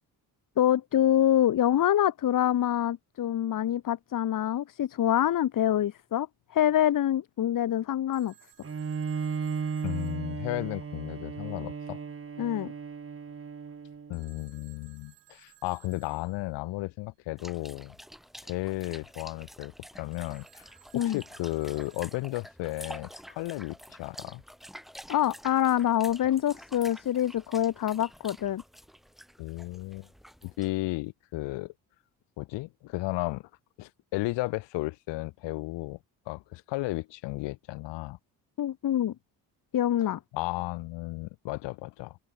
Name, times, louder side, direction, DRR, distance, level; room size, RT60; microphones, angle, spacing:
voice 1, 0.6-8.3 12.4-12.7 20.9-21.2 25.1-28.6 38.6-39.1 39.7-40.2, left 11 dB, 50° left, 1.1 m, -25 dB
Telephone, 8.1-11.2 14.1-16.7 20.1-22.8, right 17 dB, 85° right, 6.0 m, -60 dB
Bowed string instrument, 8.6-14.3, right 6 dB, 30° right, 1.8 m, -35 dB
voice 2, 9.8-12.0 14.1-17.9 18.4-19.7 20.0-20.7 20.9-24.4 29.4-30.1 30.4-31.7 32.4-33.5 33.8-36.0 36.3-38.2 40.3-42.2, left 20 dB, 90° left, 1.3 m, -34 dB
sound 1, 17.4-30.9, equal, ahead, 7.2 m, -49 dB
cardioid pair, 80°, 41 cm